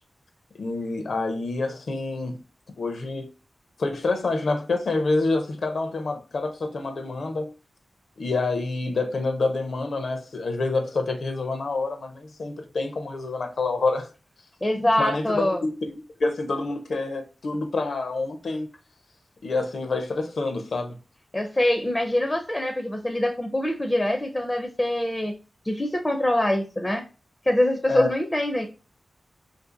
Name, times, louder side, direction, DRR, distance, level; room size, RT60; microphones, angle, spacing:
voice 1, 0.5-2.4 2.8-3.3 3.8-7.5 8.2-14.1 14.7-15.9 16.2-18.7 19.4-21.0 27.9-28.1, left 3 dB, 70° left, 0.6 m, -27 dB
voice 2, 14.6-15.6 21.3-25.3 25.6-27.0 27.4-28.7, left 1 dB, 15° left, 0.4 m, -24 dB
2.7 x 2.6 x 3.7 m
wide cardioid pair, 130°, 0 cm